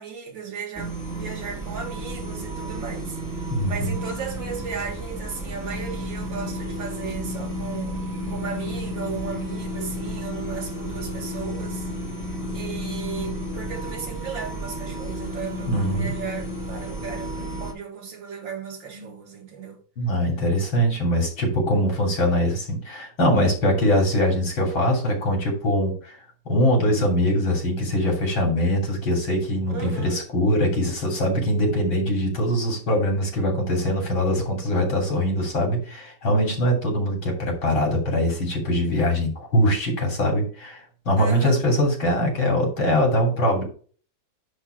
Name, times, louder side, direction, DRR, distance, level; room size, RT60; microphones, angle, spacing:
voice 1, 0.0-11.9 12.2-12.3 12.5-19.8 29.7-30.2 41.2-41.6, right 6 dB, 70° right, 2.5 m, -36 dB
sound 1, 0.7-17.7, equal, 10° right, 2.1 m, -32 dB
voice 2, 3.5-3.9 15.7-16.1 18.9-19.1 20.0-26.2 26.5-43.6, equal, 85° left, 3.8 m, -22 dB
10.5 x 3.9 x 4.6 m
omnidirectional pair, 2.1 m